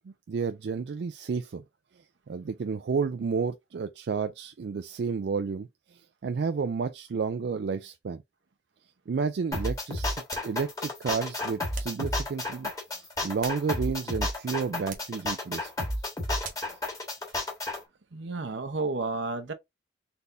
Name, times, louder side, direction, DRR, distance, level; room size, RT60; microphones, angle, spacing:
voice 1, 0.0-1.6 2.3-8.2 9.1-15.9, right 5 dB, 65° right, 0.3 m, -31 dB
sound 1, 9.5-17.8, left 1 dB, 20° left, 1.4 m, -31 dB
sound 2, 10.3-10.6 11.7-12.1 13.1-14.0 14.9-15.2 16.4-16.8, right 5 dB, 45° right, 1.1 m, -44 dB
voice 2, 18.1-19.5, right 3 dB, 80° right, 0.8 m, -32 dB
4.1 x 3.4 x 2.6 m
head